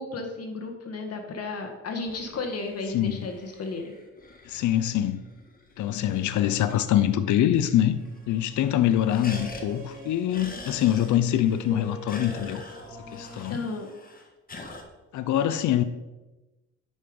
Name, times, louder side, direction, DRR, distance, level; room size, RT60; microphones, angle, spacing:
voice 1, 0.0-3.9 13.5-13.9, left 3 dB, 55° left, 1.7 m, -34 dB
sound 1, 1.9-7.2 7.5-7.6 7.9-8.4 8.7-14.8, left 2 dB, 30° left, 1.6 m, -45 dB
voice 2, 4.5-5.2 5.8-8.0 8.3-12.6 13.1-13.6 15.1-15.8, left 11 dB, 75° left, 0.6 m, -24 dB
sound 2, 6.3-13.4, equal, 75° right, 3.4 m, -46 dB
9.6 x 5.6 x 5.2 m
cardioid pair, 90°, 30 cm